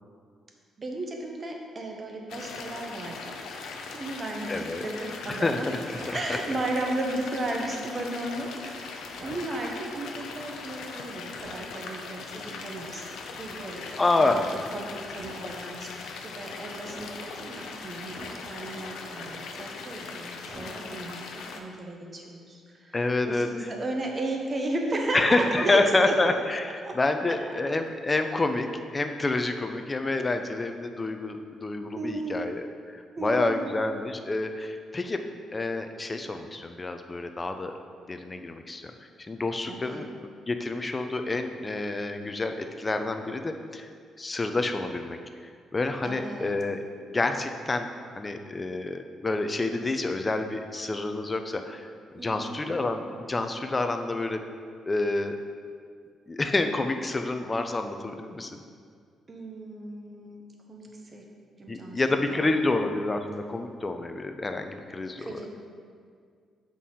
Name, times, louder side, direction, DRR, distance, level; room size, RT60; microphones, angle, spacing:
voice 1, 0.8-5.7 6.1-13.1 13.3-13.9 14.2-14.4 14.7-15.9 16.2-23.0 23.3-26.1 26.6-26.9 32.0-32.4 33.1-33.7 39.8-40.0 46.0-46.5 52.2-52.6 59.3-60.4 60.7-61.2 61.6-62.8 65.2-65.5, right 2 dB, 30° right, 1 dB, 0.8 m, -34 dB
sound 1, 2.3-21.6, left 4 dB, 85° left, 0.6 m, -40 dB
voice 2, 4.5-4.9 5.3-5.8 6.1-6.2 14.0-14.5 22.9-23.7 25.1-28.7 28.9-35.2 35.5-37.7 38.1-38.9 39.3-43.9 44.2-45.2 45.7-46.8 47.1-47.9 48.1-51.9 52.1-54.4 54.9-55.4 56.3-58.5 61.7-65.4, left 2 dB, 20° left, 6 dB, 0.4 m, -28 dB
sound 2, 5.9-6.4 9.2-9.6 11.4-11.8 14.2-14.7 15.2-15.6 16.9-17.3 18.1-18.7 20.5-21.1, right 1 dB, 60° right, 1.5 m, -46 dB
7.3 x 4.2 x 3.7 m, 2.1 s
cardioid pair, 135°, 0 cm